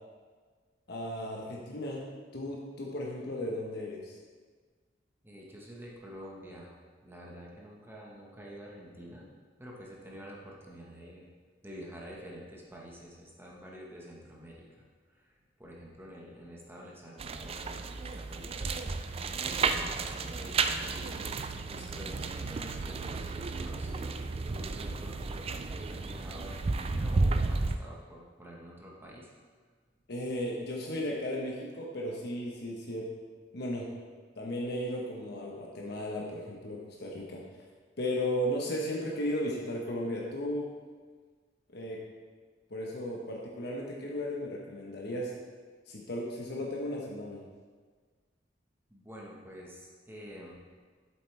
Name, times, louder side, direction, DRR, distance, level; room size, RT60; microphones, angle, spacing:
voice 1, 0.9-2.1 2.3-4.1 30.1-33.1 33.5-33.9 34.4-37.4 38.0-40.7 41.7-42.0 42.7-45.3 45.9-47.4, left 1 dB, 60° left, -2 dB, 1.1 m, -35 dB
voice 2, 5.2-6.7 7.0-9.3 9.6-11.3 11.6-18.8 19.4-20.7 21.5-25.5 25.9-29.3 48.9-50.6, equal, 15° right, -3 dB, 1.2 m, -48 dB
sound 1, 17.2-27.8, right 3 dB, 30° right, 0.4 m, -33 dB
7.9 x 7.6 x 3.4 m, 1.5 s
head